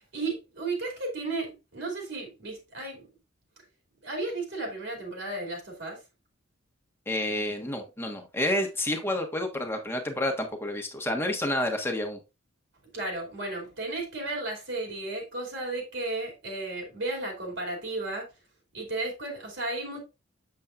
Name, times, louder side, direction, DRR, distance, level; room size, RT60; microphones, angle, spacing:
voice 1, 0.1-3.1 4.0-6.0 12.9-18.3 18.7-20.0, right 2 dB, 65° right, 2.6 m, -34 dB
voice 2, 7.1-12.2, left 1 dB, 10° left, 1.2 m, -29 dB
7.4 x 7.0 x 2.4 m
head